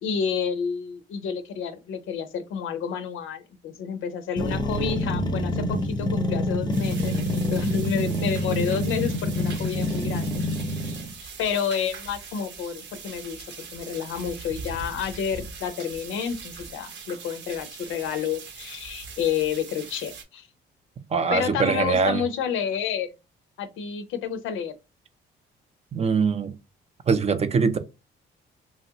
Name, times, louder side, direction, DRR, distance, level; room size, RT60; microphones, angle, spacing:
voice 1, 0.0-11.0 11.4-13.5 13.7-20.5 21.3-23.1 23.6-24.7, left 7 dB, 85° left, 0.5 m, -30 dB
sound 1, 4.4-11.1, left 1 dB, 20° left, 0.6 m, -26 dB
sound 2, 6.7-20.2, right 5 dB, 65° right, 0.8 m, -41 dB
voice 2, 21.1-22.2 25.9-26.5 27.1-27.8, right 5 dB, 30° right, 0.5 m, -22 dB
3.1 x 2.4 x 2.7 m
cardioid pair, 90°, 20 cm